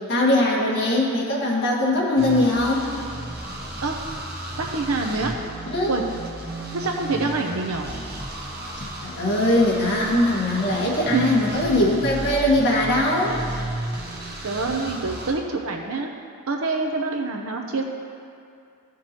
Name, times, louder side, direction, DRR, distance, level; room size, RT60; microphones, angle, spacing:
voice 1, 0.0-2.9 5.7-6.0 9.0-13.4, left 1 dB, 50° left, -5 dB, 1.8 m, -21 dB
sound 1, 2.2-15.3, right 1 dB, 45° right, 1.4 m, -34 dB
voice 2, 4.6-5.3 5.9-6.0 6.7-7.8 10.9-11.3 14.4-16.1 16.5-17.8, right 3 dB, 75° right, 2 dB, 0.7 m, -26 dB
15.0 x 6.0 x 3.0 m, 2.4 s
head